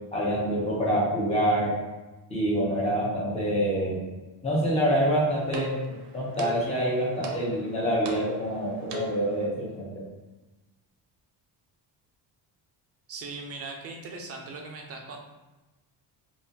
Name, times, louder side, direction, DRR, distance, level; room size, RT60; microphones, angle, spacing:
voice 1, 0.1-1.7 2.3-4.0 4.4-10.0, equal, 15° left, -6 dB, 0.9 m, -26 dB
sound 1, 4.9-9.5, right 1 dB, 85° right, 0.7 m, -41 dB
voice 2, 13.1-15.2, right 3 dB, 35° right, 2 dB, 0.5 m, -39 dB
3.5 x 2.6 x 2.8 m, 1.1 s
cardioid pair, 155°, 41 cm